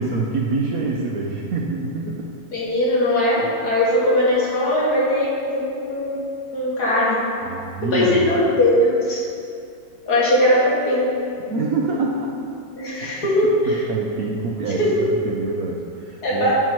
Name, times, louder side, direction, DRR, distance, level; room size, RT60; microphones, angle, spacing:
voice 1, 0.0-2.3 3.4-3.5 7.4-8.3 11.5-12.4 13.0-13.1 13.4-15.0 15.2-16.5, right 3 dB, 65° right, -1 dB, 1.0 m, -26 dB
voice 2, 2.5-6.2 6.5-7.2 7.9-9.2 10.1-11.1 12.8-13.7 14.8-14.9 16.2-16.5, left 1 dB, 60° left, -6 dB, 2.4 m, -19 dB
9.4 x 5.9 x 4.5 m, 2.5 s
omnidirectional pair, 2.0 m